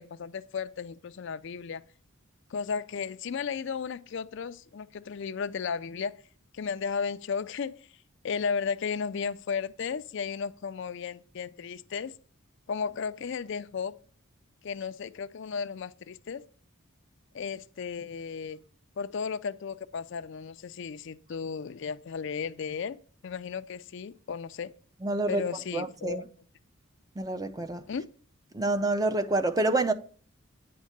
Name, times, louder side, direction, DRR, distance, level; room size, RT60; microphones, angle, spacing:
voice 1, 0.0-1.8 2.5-6.2 6.5-7.9 8.2-12.1 12.7-14.0 14.6-16.5 17.3-18.6 19.0-23.0 23.2-24.7 25.3-26.2 27.9-28.1, left 6 dB, 55° left, 0.4 m, -34 dB
voice 2, 25.0-25.4 25.7-26.2 27.2-27.8 28.5-29.9, right 2 dB, 15° right, 0.5 m, -27 dB
9.5 x 3.6 x 6.5 m
head